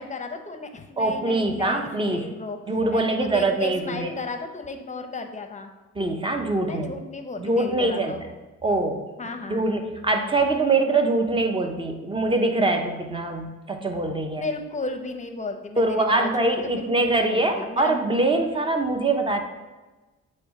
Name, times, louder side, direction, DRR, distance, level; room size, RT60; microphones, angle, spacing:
voice 1, 0.0-2.6 2.9-5.7 6.7-8.2 9.2-9.7 14.4-18.0, left 3 dB, 25° left, 6 dB, 0.7 m, -34 dB
voice 2, 1.0-2.3 2.7-4.1 6.0-6.9 7.4-8.2 8.6-9.1 9.5-14.5 15.8-19.4, right 2 dB, 15° right, 4 dB, 0.8 m, -23 dB
8.2 x 3.1 x 4.8 m, 1.2 s
cardioid pair, 90°, 30 cm